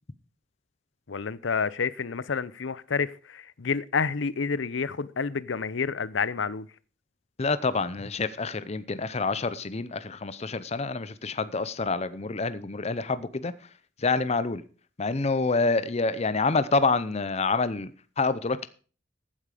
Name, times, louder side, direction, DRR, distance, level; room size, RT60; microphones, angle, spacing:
voice 1, 1.1-6.7, left 5 dB, 85° left, 0.7 m, -29 dB
voice 2, 7.4-13.5 14.0-14.6 15.0-17.9 18.2-18.7, left 3 dB, 35° left, 0.7 m, -27 dB
15.0 x 8.9 x 5.0 m
head